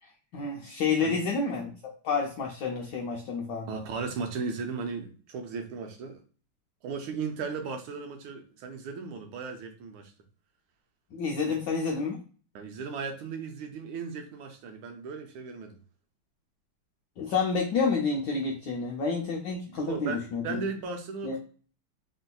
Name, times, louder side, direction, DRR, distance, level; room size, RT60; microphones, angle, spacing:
voice 1, 0.0-1.7 2.0-3.7 11.1-12.2 17.2-20.6 21.2-21.4, left 4 dB, 75° left, -1 dB, 1.0 m, -29 dB
voice 2, 3.7-6.2 6.8-10.1 11.4-11.6 12.5-15.8 19.7-21.4, right 5 dB, 80° right, 5 dB, 1.5 m, -36 dB
3.5 x 2.6 x 2.2 m, 0.40 s
omnidirectional pair, 2.3 m